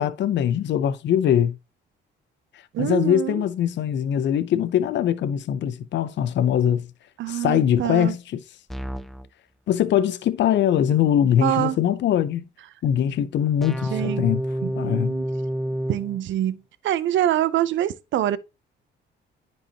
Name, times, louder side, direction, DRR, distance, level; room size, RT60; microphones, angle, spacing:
voice 1, 0.0-1.6 2.8-6.9 7.3-8.4 9.7-12.5 12.8-14.4 14.8-15.1, left 10 dB, 65° left, 0.6 m, -22 dB
voice 2, 2.7-3.4 7.2-8.1 11.4-11.8 13.9-14.3 14.6-15.2 15.9-16.6 16.8-18.4, right 12 dB, 70° right, 0.6 m, -25 dB
sound 1, 8.7-9.3 13.6-16.2, right 1 dB, ahead, 0.4 m, -29 dB
10.0 x 4.6 x 2.9 m
cardioid pair, 90°, 20 cm